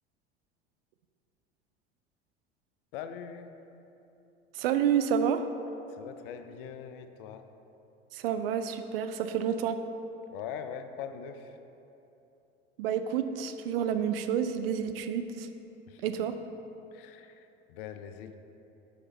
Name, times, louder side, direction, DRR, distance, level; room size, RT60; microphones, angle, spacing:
voice 1, 2.9-3.6 5.9-7.5 10.3-11.6 15.9-16.0 16.9-18.3, left 8 dB, 55° left, 9 dB, 0.5 m, -42 dB
voice 2, 4.5-5.4 8.1-9.8 12.8-15.5 16.0-16.4, right 8 dB, 60° right, 9 dB, 0.5 m, -29 dB
6.5 x 5.0 x 4.4 m, 2.9 s
figure-of-eight pair, 75°, 33 cm